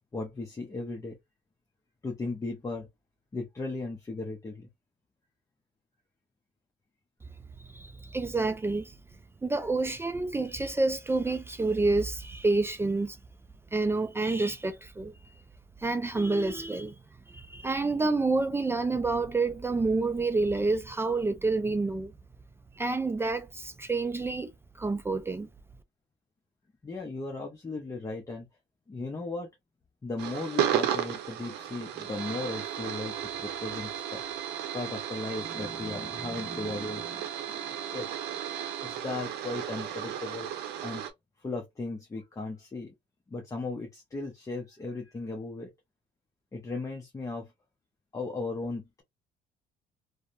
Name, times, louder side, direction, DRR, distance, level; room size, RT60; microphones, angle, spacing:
voice 1, 0.1-1.2 2.0-2.9 3.3-4.7 26.8-28.5 28.9-29.5 30.0-34.2 34.7-38.1 38.8-40.5 40.8-41.0 41.4-42.9 43.3-45.7 46.5-47.5 48.1-49.0, left 3 dB, 20° left, 0.6 m, -36 dB
voice 2, 7.6-8.9 9.4-13.2 13.7-15.1 15.8-16.9 17.3-22.1 22.8-24.5 24.8-25.5, right 3 dB, 15° right, 0.3 m, -28 dB
sound 1, 30.2-41.1, right 10 dB, 85° right, 0.6 m, -34 dB
2.7 x 2.1 x 2.5 m
cardioid pair, 110°, 17 cm